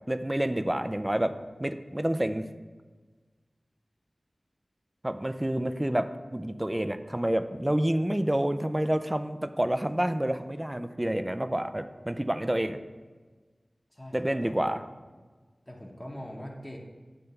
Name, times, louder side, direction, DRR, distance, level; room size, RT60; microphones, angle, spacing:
voice 1, 0.1-1.3 1.6-2.5 5.0-12.8 14.1-14.8, right 1 dB, 20° right, 10 dB, 0.4 m, -28 dB
voice 2, 13.9-14.8 15.7-16.8, equal, 15° left, -1 dB, 1.0 m, -42 dB
8.9 x 3.3 x 6.6 m, 1.3 s
wide cardioid pair, 60°, 0 cm